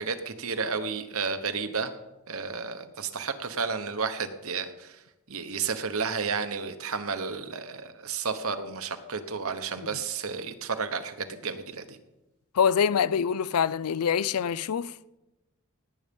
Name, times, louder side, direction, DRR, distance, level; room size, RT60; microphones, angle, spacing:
voice 1, 0.0-1.9 2.3-5.0 5.3-12.0, right 5 dB, 65° right, 1.2 m, -32 dB
voice 2, 12.6-14.9, left 7 dB, 80° left, 0.4 m, -25 dB
18.0 x 8.7 x 5.3 m
head